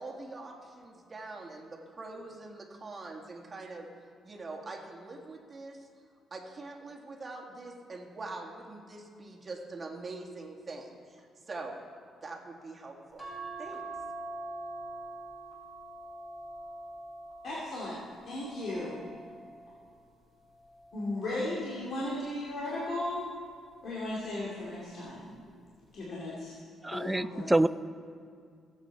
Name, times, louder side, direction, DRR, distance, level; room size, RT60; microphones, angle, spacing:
voice 1, 0.0-3.9 4.2-5.9 6.3-11.7 12.2-13.3 13.6-13.8, right 3 dB, 25° right, 0 dB, 1.9 m, -43 dB
sound 1, 13.2-19.8 20.4-21.8 23.1-23.5 23.8-23.9, right 2 dB, 25° left, 3.5 m, -44 dB
voice 2, 17.4-19.0 20.9-23.3 23.8-25.3 25.9-26.5 26.9-27.5, left 1 dB, 55° left, -6 dB, 2.4 m, -36 dB
voice 3, 26.8-27.7, right 1 dB, 10° right, 13 dB, 0.4 m, -26 dB
17.0 x 8.3 x 4.6 m, 2.3 s
cardioid pair, 120°, 0 cm